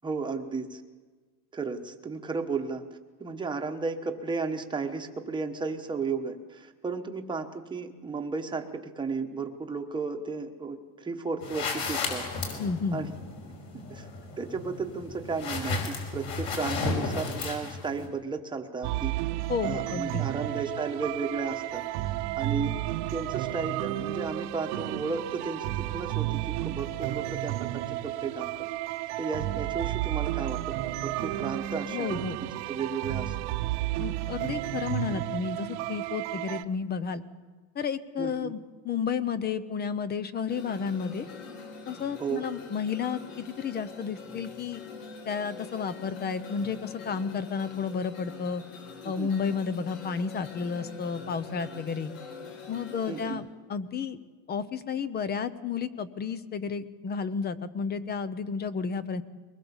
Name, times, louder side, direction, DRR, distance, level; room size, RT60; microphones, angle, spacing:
voice 1, 0.0-0.8 1.5-12.3 12.9-13.1 13.9-14.1 14.4-19.2 19.6-22.7 23.1-28.5 29.2-32.2 32.7-33.5 35.1-35.2 38.2-38.5 42.2-42.4 49.0-49.3 53.1-53.4, right 4 dB, 10° right, 4 dB, 1.2 m, -34 dB
sound 1, 11.4-18.1, left 3 dB, 50° left, 5.4 m, -34 dB
voice 2, 12.6-13.0 19.5-20.2 31.9-32.4 34.0-37.2 37.7-38.6 38.8-41.3 41.9-44.8 45.3-48.6 49.0-52.1 52.7-54.2 54.5-59.2, left 6 dB, 20° left, 15 dB, 0.6 m, -32 dB
sound 2, 18.8-36.6, right 16 dB, 65° right, 1.1 m, -32 dB
sound 3, 40.5-53.3, left 5 dB, 65° left, 4.9 m, -44 dB
23.0 x 20.5 x 7.2 m, 1.4 s
cardioid pair, 160°, 49 cm